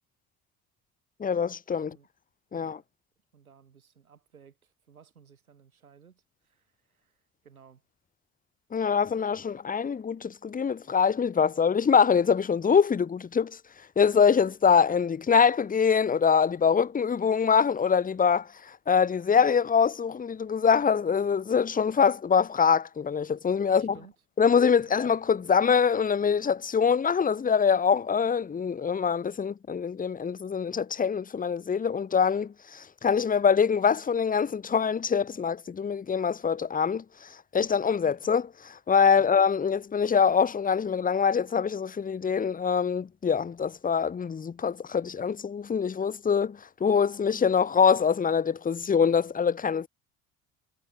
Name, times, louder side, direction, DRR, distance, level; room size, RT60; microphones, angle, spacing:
voice 1, 1.2-2.0 2.5-2.8 8.7-13.6 14.0-23.9 24.4-49.9, left 6 dB, 20° left, 0.9 m, -24 dB
voice 2, 2.5-2.9 3.3-7.8 23.6-24.1 24.9-25.0 39.2-39.3, right 7 dB, 90° right, 7.1 m, -57 dB
hypercardioid pair, 60°, 42 cm